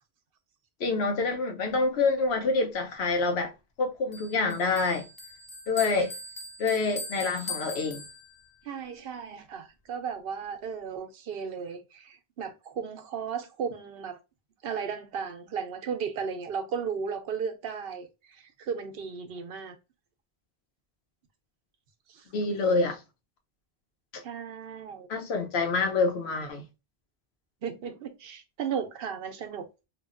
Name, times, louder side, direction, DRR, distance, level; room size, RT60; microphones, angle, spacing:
voice 1, 0.8-3.5 3.8-5.1 5.7-6.1 6.6-8.0 22.3-23.0 24.1-24.2 25.1-26.6, left 3 dB, 85° left, 1.0 m, -27 dB
Bell, 4.1-8.6, left 2 dB, 35° left, 0.3 m, -41 dB
voice 2, 8.7-14.2 14.6-18.1 18.6-19.7 22.1-22.2 24.2-25.1 27.6-29.7, right 6 dB, 70° right, 0.8 m, -35 dB
3.4 x 2.3 x 2.4 m
omnidirectional pair, 1.0 m